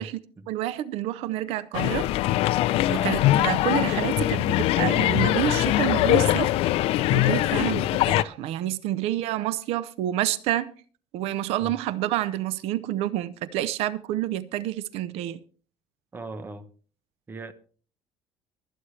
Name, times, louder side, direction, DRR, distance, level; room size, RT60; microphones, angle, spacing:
voice 1, 0.5-2.1 2.9-6.5 7.1-10.7 11.1-15.4, right 13 dB, 85° right, 0.7 m, -28 dB
sound 1, 1.7-8.2, left 15 dB, 75° left, 0.5 m, -22 dB
voice 2, 16.1-16.7 17.3-17.5, right 2 dB, 20° right, 1.1 m, -38 dB
24.0 x 8.6 x 3.3 m
cardioid pair, 155°, 10 cm